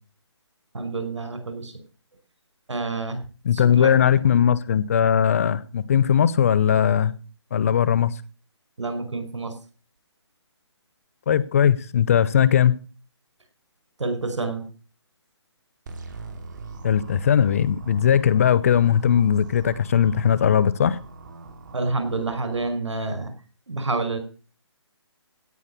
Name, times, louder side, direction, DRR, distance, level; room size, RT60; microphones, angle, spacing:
voice 1, 0.7-1.7 2.7-3.2 3.5-3.9 8.8-9.5 14.0-14.7 21.7-23.3 23.7-24.2, right 3 dB, 85° right, 5.4 m, -28 dB
voice 2, 3.4-7.1 7.5-8.1 11.3-12.8 16.8-21.0, left 8 dB, 30° left, 0.8 m, -19 dB
sound 1, 15.9-22.7, right 3 dB, 40° right, 3.1 m, -41 dB
16.5 x 6.4 x 8.6 m
hypercardioid pair, 165°, 15 cm